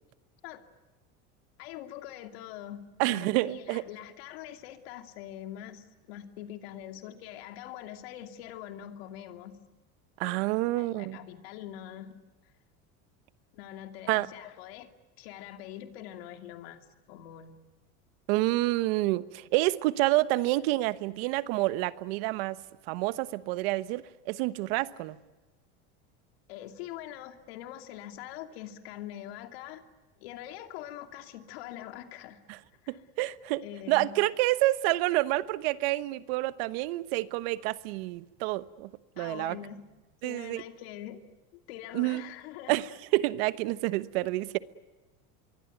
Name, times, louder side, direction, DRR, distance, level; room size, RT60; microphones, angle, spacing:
voice 1, 1.6-9.6 10.2-10.4 10.8-12.1 13.5-14.9 15.2-17.6 26.5-29.8 30.2-32.4 32.8-33.0 33.6-34.1 39.2-39.8 40.2-41.2 41.5-42.8, left 11 dB, 80° left, 2.8 m, -43 dB
voice 2, 3.0-3.9 10.2-11.2 14.1-14.3 18.3-22.6 22.9-25.2 32.5-32.6 32.9-38.9 39.2-39.6 40.2-40.6 41.9-42.3 42.7-44.6, right 18 dB, 75° right, 1.2 m, -28 dB
25.5 x 23.5 x 9.2 m
supercardioid pair, 140°, 30 cm